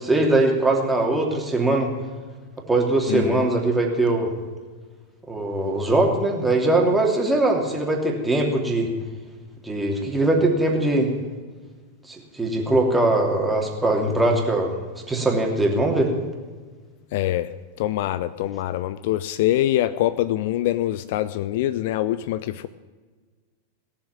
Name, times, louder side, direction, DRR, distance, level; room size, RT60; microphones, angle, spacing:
voice 1, 0.0-1.9 2.7-4.3 5.3-8.9 9.6-11.1 12.1-16.1, right 2 dB, 10° right, 0 dB, 2.9 m, -21 dB
voice 2, 3.1-3.5 17.1-17.5 17.8-22.7, left 14 dB, 50° left, 14 dB, 0.5 m, -24 dB
18.0 x 7.1 x 8.7 m, 1.4 s
figure-of-eight pair, 90°, 0 cm